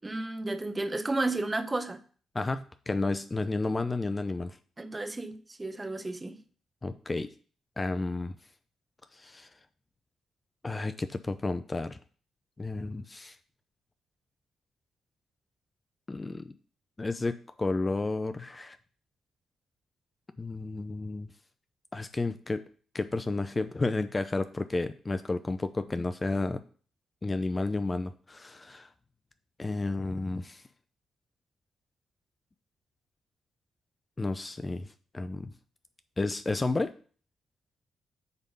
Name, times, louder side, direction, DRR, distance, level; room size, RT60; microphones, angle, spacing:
voice 1, 0.0-2.0 4.8-6.4, right 2 dB, 25° right, 1.1 m, -32 dB
voice 2, 2.3-4.6 6.8-7.3 7.8-8.4 9.1-9.5 10.6-12.0 12.6-13.4 16.1-16.5 17.0-18.8 20.4-21.3 21.9-22.6 22.9-26.6 27.2-28.9 29.6-30.6 34.2-35.5 36.2-36.9, left 3 dB, 30° left, 0.6 m, -32 dB
8.2 x 3.7 x 5.3 m
hypercardioid pair, 45°, 0 cm